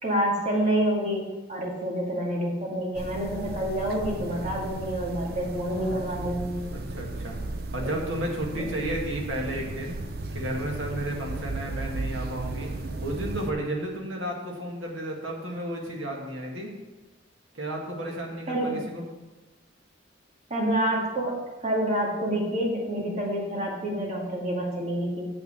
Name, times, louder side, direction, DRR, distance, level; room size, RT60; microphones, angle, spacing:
voice 1, 0.0-1.2 1.5-6.6 7.8-7.9 8.6-8.7 18.5-18.8 20.5-25.3, right 1 dB, 35° right, -3 dB, 2.2 m, -28 dB
sound 1, 2.9-13.5, right 2 dB, 50° right, 0.7 m, -35 dB
voice 2, 6.7-7.4 7.7-10.0 10.3-12.7 13.0-16.7 17.5-19.0, right 1 dB, 85° right, 0 dB, 2.0 m, -32 dB
7.7 x 6.1 x 6.8 m, 1.2 s
head